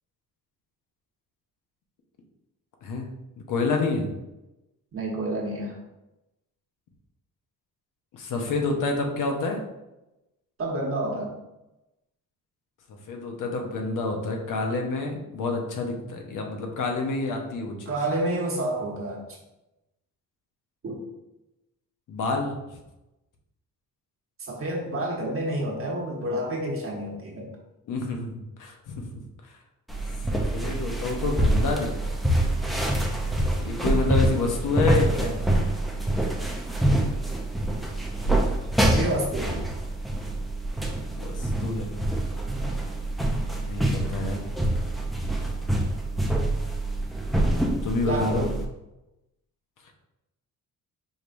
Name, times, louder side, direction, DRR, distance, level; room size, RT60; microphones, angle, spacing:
voice 1, 3.5-4.1 8.1-9.6 13.1-17.9 22.1-22.5 27.9-29.1 30.3-32.2 33.6-35.5 41.2-41.9 43.6-44.4 47.8-48.5, left 3 dB, 60° left, 2 dB, 0.8 m, -28 dB
voice 2, 4.9-5.8 10.6-11.3 17.9-19.2 20.8-21.0 24.4-27.5 38.8-39.6 48.0-48.5, right 1 dB, 40° right, -2 dB, 1.1 m, -29 dB
sound 1, 29.9-48.7, right 1 dB, ahead, 0.5 m, -26 dB
5.1 x 3.1 x 2.5 m, 0.96 s
cardioid pair, 125°, 35 cm